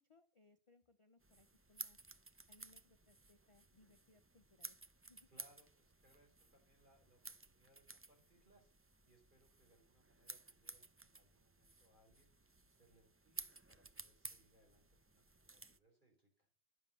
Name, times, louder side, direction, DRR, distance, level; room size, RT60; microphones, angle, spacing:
voice 1, 0.0-2.0 2.5-5.3, left 2 dB, 35° left, 7 dB, 0.7 m, -70 dB
sound 1, 1.2-15.8, right 3 dB, 20° right, 0.3 m, -55 dB
voice 2, 5.3-16.5, right 1 dB, 45° right, 0 dB, 5.1 m, -73 dB
11.5 x 7.2 x 6.8 m, 0.37 s
omnidirectional pair, 1.1 m